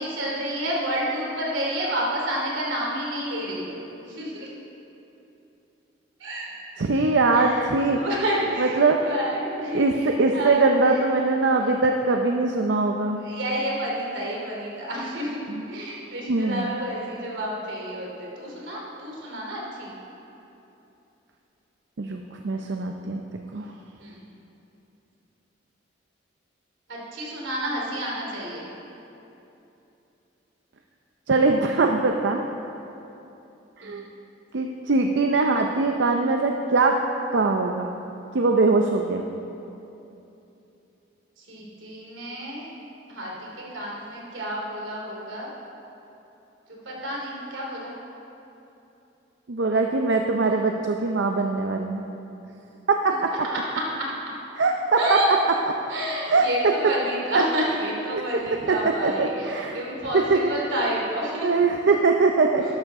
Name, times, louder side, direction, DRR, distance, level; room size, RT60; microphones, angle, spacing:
voice 1, 0.0-4.5 6.2-6.5 7.3-10.7 13.2-15.4 15.7-19.9 24.0-24.2 26.9-28.7 33.8-34.0 41.4-42.7 43.1-45.5 46.7-48.0 53.4-54.1 55.0-55.3 55.9-61.5 61.9-62.0, equal, 85° right, -3 dB, 2.7 m, -30 dB
voice 2, 6.8-8.0 8.6-9.0 9.7-13.2 15.5-15.6 16.3-16.7 22.0-23.2 23.5-23.7 31.3-32.4 33.8-34.0 34.5-37.0 37.3-37.9 38.3-39.2 49.5-52.0 52.9-53.3 54.6-55.2 56.3-56.5 57.3-57.4 58.1-59.8 60.3-60.7 61.4-62.6, right 3 dB, 70° right, 3 dB, 0.6 m, -22 dB
12.5 x 11.5 x 3.7 m, 2.9 s
head